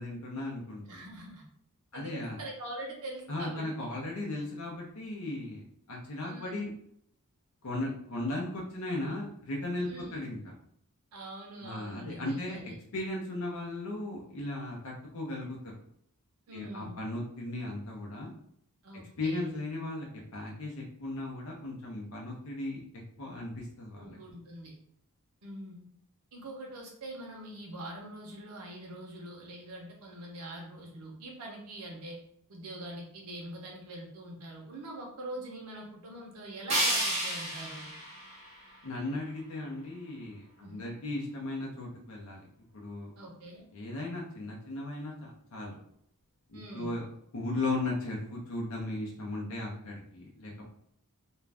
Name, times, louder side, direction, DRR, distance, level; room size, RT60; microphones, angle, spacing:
voice 1, 0.0-1.0 1.9-2.4 3.3-6.7 7.6-10.5 11.6-15.6 16.5-18.3 19.2-20.1 20.3-22.8 23.2-24.2 38.8-42.5 42.7-43.1 43.7-45.8 46.5-47.0 47.3-50.7, left 2 dB, 65° left, -2 dB, 0.6 m, -36 dB
voice 2, 0.9-1.4 1.9-3.7 6.2-6.7 9.9-10.2 11.1-12.8 16.5-17.0 18.8-19.5 23.9-24.7 25.4-25.8 26.3-32.2 32.5-37.9 40.6-40.9 43.2-43.6 46.5-47.0, right 1 dB, 80° right, -1 dB, 0.8 m, -44 dB
sound 1, 36.7-39.7, right 1 dB, 30° right, 0.9 m, -32 dB
2.5 x 2.2 x 3.3 m, 0.69 s
head